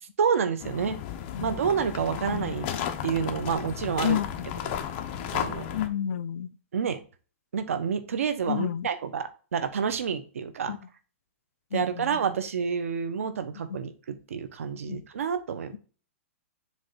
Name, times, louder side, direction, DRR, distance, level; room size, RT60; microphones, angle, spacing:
voice 1, 0.2-1.0 1.4-2.7 3.0-4.2 4.6-4.8 5.3-5.8 6.7-7.0 7.5-10.7 11.7-15.8, right 6 dB, 85° right, 1.1 m, -29 dB
sound 1, 0.6-5.9, left 9 dB, 40° left, 0.9 m, -34 dB
voice 2, 4.0-4.7 5.7-6.5 8.5-8.9 10.7-10.8 11.7-12.2 14.9-15.0, left 9 dB, 85° left, 0.5 m, -31 dB
7.1 x 3.4 x 4.1 m
hypercardioid pair, 150°, 7 cm